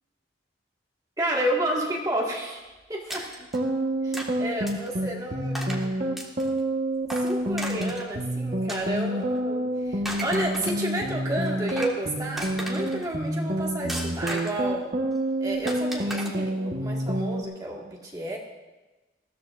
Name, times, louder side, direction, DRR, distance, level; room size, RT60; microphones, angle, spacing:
voice 1, 1.2-3.3 4.0-5.9 7.2-14.9 15.4-18.4, right 1 dB, 20° right, -2 dB, 1.7 m, -31 dB
sound 1, 3.1-3.6 4.1-4.3 4.7-4.9 5.5-5.9 6.2-6.6 7.1-8.1 8.7-9.4 9.9-11.0 11.5-12.0 12.4-13.1 13.9-14.7 15.7-16.3, right 1 dB, ahead, 1.5 m, -35 dB
sound 2, 3.4-17.4, right 1 dB, 50° right, 1.2 m, -28 dB
20.5 x 15.0 x 2.5 m, 1.1 s
head